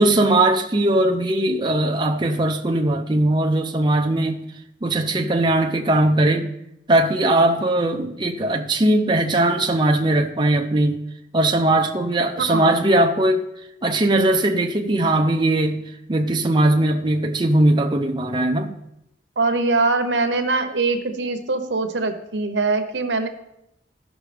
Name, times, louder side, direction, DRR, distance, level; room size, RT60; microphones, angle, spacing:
voice 1, 0.0-4.5 4.8-6.5 6.9-11.0 11.3-13.4 13.8-18.7, right 1 dB, 25° right, 0.6 m, -19 dB
voice 2, 12.5-12.8 19.4-23.3, right 3 dB, 75° right, 1.0 m, -22 dB
14.5 x 5.9 x 3.4 m
head